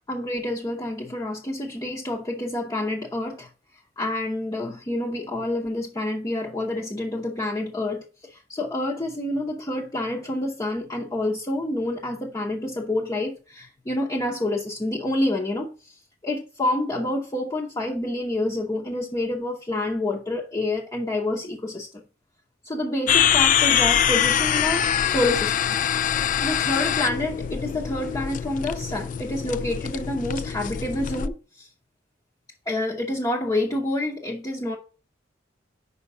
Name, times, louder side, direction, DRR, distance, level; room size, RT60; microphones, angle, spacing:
voice 1, 0.1-3.5 4.0-15.9 16.2-21.9 22.6-31.7 32.7-34.8, left 1 dB, 20° left, 0.8 m, -28 dB
sound 1, 23.1-31.3, left 9 dB, 45° left, 0.3 m, -24 dB
5.5 x 5.1 x 4.8 m
head